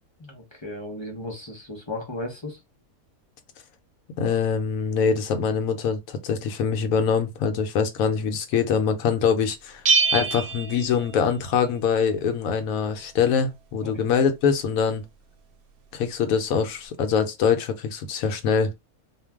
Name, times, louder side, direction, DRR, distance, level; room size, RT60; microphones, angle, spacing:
voice 1, 0.2-2.6 13.8-13.9, left 1 dB, 30° left, 0.6 m, -35 dB
voice 2, 4.2-9.8 10.1-15.0 15.9-18.7, left 6 dB, 75° left, 1.0 m, -24 dB
Bell, 9.9-11.7, right 5 dB, 80° right, 1.1 m, -24 dB
2.5 x 2.2 x 3.4 m
omnidirectional pair, 1.5 m